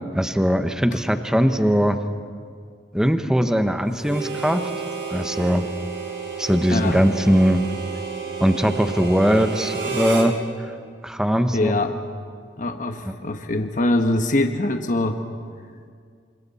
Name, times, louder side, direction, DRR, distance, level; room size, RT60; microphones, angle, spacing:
voice 1, 0.1-2.0 2.9-4.7 5.1-5.7 6.4-7.6 8.4-10.3 11.0-11.7 13.0-13.1, equal, 5° right, 8 dB, 0.9 m, -20 dB
Harmonica, 4.0-10.3, right 5 dB, 75° right, 4.2 m, -31 dB
voice 2, 6.7-7.0 11.5-11.9 12.6-15.2, left 2 dB, 45° left, 6 dB, 1.1 m, -23 dB
27.5 x 26.0 x 4.2 m, 2.1 s
head